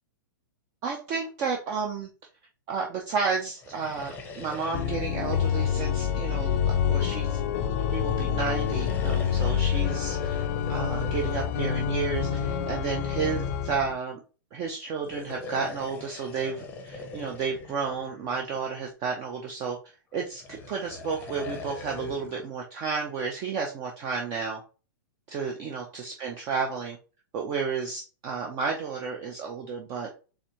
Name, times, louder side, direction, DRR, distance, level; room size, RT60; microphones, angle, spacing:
voice 1, 0.8-2.1 2.7-7.4 7.9-14.2 14.5-19.8 20.1-24.6 25.3-27.0 27.3-30.1, right 5 dB, 30° right, 1 dB, 0.7 m, -32 dB
sound 1, 3.5-7.1 8.4-12.7 14.9-18.9 20.2-22.5, left 3 dB, 15° left, 0.8 m, -43 dB
Organ, 4.7-13.9, left 8 dB, 40° left, 0.5 m, -27 dB
4.1 x 3.4 x 3.0 m, 0.34 s
hypercardioid pair, 150°, 11 cm